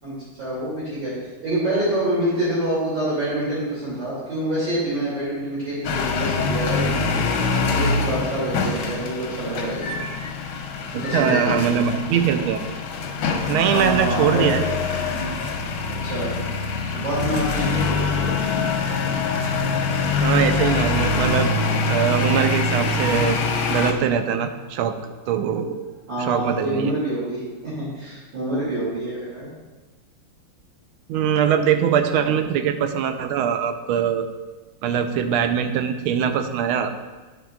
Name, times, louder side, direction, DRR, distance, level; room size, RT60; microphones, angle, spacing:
voice 1, 0.0-1.1 1.4-7.1 7.6-9.9 10.9-11.7 13.6-14.5 15.8-16.3 16.9-18.6 26.1-29.5 32.1-32.3, right 1 dB, 55° right, -9 dB, 3.3 m, -26 dB
sound 1, 5.8-23.9, left 4 dB, 75° left, 1.6 m, -24 dB
voice 2, 10.9-12.6 13.5-14.6 20.2-21.5 21.9-23.4 23.7-25.0 25.3-25.8 26.2-26.9 31.1-34.3 34.8-36.9, right 8 dB, 80° right, 8 dB, 1.4 m, -22 dB
sound 2, 16.8-27.0, left 6 dB, 50° left, 1.3 m, -38 dB
9.8 x 7.4 x 2.4 m, 1.3 s
omnidirectional pair, 2.4 m